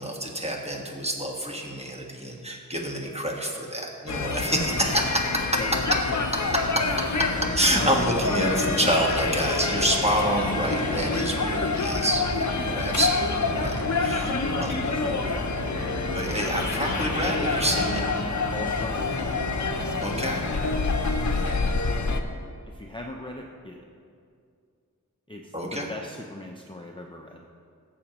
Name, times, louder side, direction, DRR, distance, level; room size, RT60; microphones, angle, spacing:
voice 1, 0.0-5.6 6.5-6.6 7.5-14.3 14.6-14.7 16.1-18.0 20.0-20.5 25.5-25.9, right 1 dB, 20° right, -1 dB, 1.5 m, -27 dB
sound 1, 4.1-22.2, left 4 dB, 55° left, 0.7 m, -27 dB
voice 2, 5.6-6.0 7.7-8.1 8.8-9.0 12.6-12.8 14.2-16.0 18.5-19.5 22.6-23.8 25.3-27.4, left 1 dB, 15° left, 0 dB, 0.6 m, -38 dB
sound 2, 6.9-21.6, right 1 dB, 40° right, 1.1 m, -37 dB
15.5 x 7.2 x 3.0 m, 2.3 s
wide cardioid pair, 70°, 35 cm